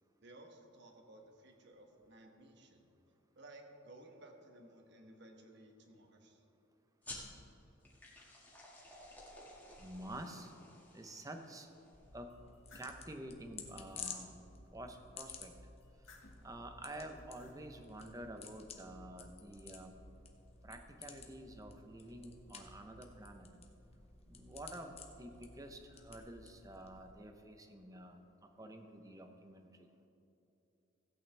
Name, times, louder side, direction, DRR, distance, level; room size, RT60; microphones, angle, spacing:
voice 1, 0.2-2.9 3.3-6.4, right 1 dB, 60° right, 3 dB, 1.2 m, -57 dB
sound 1, 7.0-12.1, left 2 dB, 10° left, 1.9 m, -54 dB
voice 2, 9.8-10.5 10.9-11.7 12.1-12.3 12.7-14.4 14.7-15.5 16.4-19.9 20.6-23.5 24.3-28.2 28.6-29.7, right 1 dB, 15° right, 5 dB, 0.8 m, -49 dB
sound 2, 11.9-27.1, left 5 dB, 30° left, 0.9 m, -53 dB
sound 3, 12.3-13.0 13.6-14.2 15.8-16.5 17.1-17.6, left 3 dB, 75° left, 1.8 m, -62 dB
15.5 x 8.7 x 3.4 m, 2.9 s
head